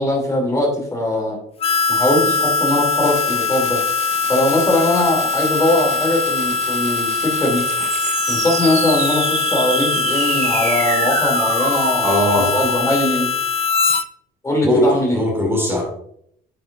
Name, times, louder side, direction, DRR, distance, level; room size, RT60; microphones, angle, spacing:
voice 1, 0.0-1.4 1.9-3.8 4.3-7.6 8.3-13.3 14.4-15.2, left 1 dB, 20° left, -1 dB, 2.7 m, -20 dB
Harmonica, 1.6-14.0, left 4 dB, 35° left, 0.4 m, -21 dB
sound 1, 3.0-12.8, right 6 dB, 45° right, 1.0 m, -28 dB
voice 2, 12.0-12.5 14.6-15.8, equal, 15° right, -1 dB, 2.7 m, -19 dB
10.0 x 6.0 x 2.5 m, 0.69 s
cardioid pair, 110°, 17 cm